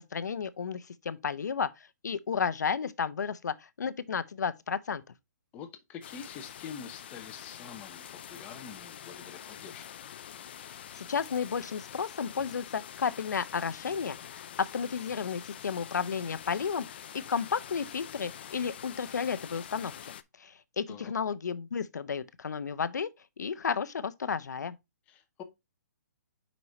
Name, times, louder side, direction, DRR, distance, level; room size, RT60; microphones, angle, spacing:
voice 1, 0.1-1.7 2.0-5.0 10.9-14.2 14.6-16.8 17.3-20.0 20.4-23.1 23.4-24.8, left 6 dB, 90° left, 0.7 m, -32 dB
voice 2, 5.5-9.8 20.9-21.1 25.1-25.4, left 7 dB, 15° left, 0.7 m, -45 dB
sound 1, 6.0-20.2, left 10 dB, 35° left, 0.4 m, -46 dB
5.8 x 5.4 x 3.1 m
hypercardioid pair, 170°, 9 cm